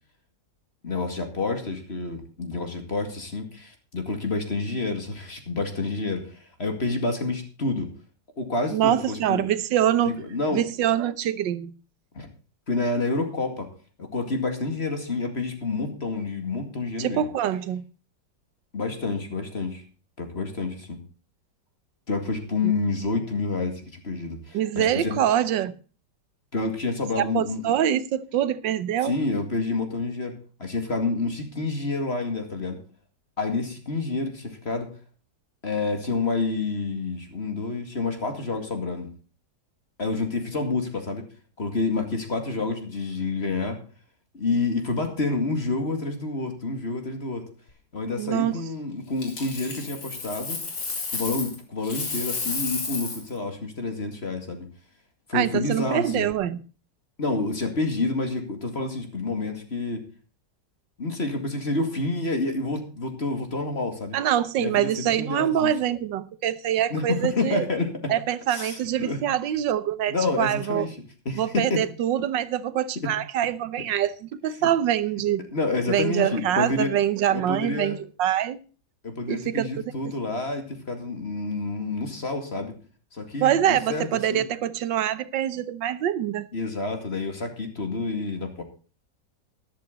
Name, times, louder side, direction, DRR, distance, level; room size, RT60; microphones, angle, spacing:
voice 1, 0.8-7.9 8.4-9.4 10.1-10.6 12.1-12.3 12.7-13.7 14.0-17.3 18.7-19.8 20.2-21.0 22.1-25.2 26.5-27.7 29.0-32.8 33.4-34.9 35.6-39.1 40.0-41.3 41.6-43.8 44.3-47.4 47.9-50.6 51.1-54.7 55.3-56.3 57.2-60.0 61.0-64.2 64.6-65.7 66.9-68.1 68.5-69.2 70.1-70.9 71.3-71.8 73.0-73.1 74.6-74.7 75.5-76.9 77.3-78.0 79.0-82.8 83.1-84.4 86.5-88.6, left 3 dB, 35° left, 2.4 m, -28 dB
voice 2, 8.7-10.2 10.5-11.7 17.0-17.8 22.6-22.7 24.5-25.8 27.3-29.1 48.2-48.6 55.3-56.6 64.1-67.7 68.1-70.9 71.4-75.5 75.9-78.6 79.3-79.7 83.4-86.5, right 10 dB, 85° right, 1.5 m, -25 dB
Coin (dropping), 49.2-51.6 51.8-53.3 56.1-56.3, left 4 dB, 90° left, 3.6 m, -32 dB
13.0 x 11.5 x 3.9 m
omnidirectional pair, 1.9 m